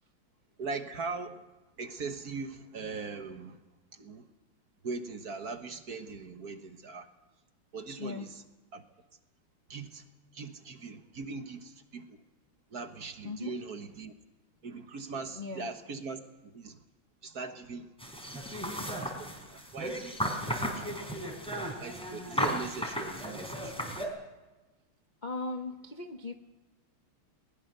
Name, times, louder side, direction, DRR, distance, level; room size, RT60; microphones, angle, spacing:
voice 1, 0.6-1.4 1.8-3.6 3.9-4.2 4.8-7.1 7.7-8.3 8.7-8.8 9.7-10.0 10.3-12.0 12.7-14.1 14.6-16.8 17.2-17.9 18.5-21.0 21.8-23.8, right 4 dB, 50° right, 7 dB, 1.7 m, -40 dB
voice 2, 13.2-13.6 15.1-15.7 25.2-26.3, left 3 dB, 35° left, 6 dB, 0.7 m, -38 dB
sound 1, 18.0-24.1, equal, ahead, 4.1 m, -35 dB
22.0 x 20.5 x 6.7 m, 1.1 s
omnidirectional pair, 2.4 m